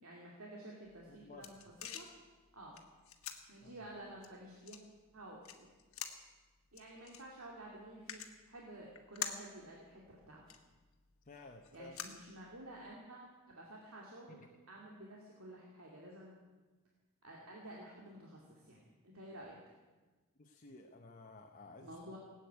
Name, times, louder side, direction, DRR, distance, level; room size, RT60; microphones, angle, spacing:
voice 1, 0.0-1.5 1.9-2.1 2.5-2.8 3.5-4.8 5.1-5.7 6.7-10.4 11.7-14.4 14.7-16.3 17.2-19.6 21.8-22.2, right 1 dB, 75° right, -3 dB, 2.5 m, -52 dB
sound 1, 0.9-12.9, left 9 dB, 70° left, 1.6 m, -50 dB
voice 2, 1.1-1.8 3.6-3.8 11.2-11.9 14.3-14.5 20.4-22.1, left 2 dB, 35° left, 2 dB, 1.0 m, -55 dB
18.0 x 9.1 x 8.1 m, 1.3 s
head